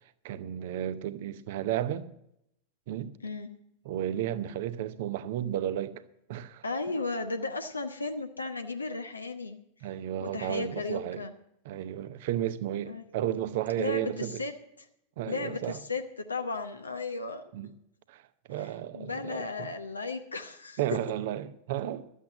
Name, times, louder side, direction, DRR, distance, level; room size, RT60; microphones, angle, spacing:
voice 1, 0.2-2.1 2.9-3.1 3.8-6.0 6.3-6.6 9.8-11.2 11.6-14.4 15.2-15.8 17.5-17.7 18.1-18.2 18.5-19.7 20.8-22.1, right 11 dB, 50° right, 0.8 m, -33 dB
voice 2, 6.6-9.9 10.2-11.3 12.8-13.0 13.7-14.5 15.3-17.4 18.6-21.0, left 3 dB, 80° left, 0.9 m, -35 dB
13.0 x 8.4 x 7.3 m
figure-of-eight pair, 90°, 0 cm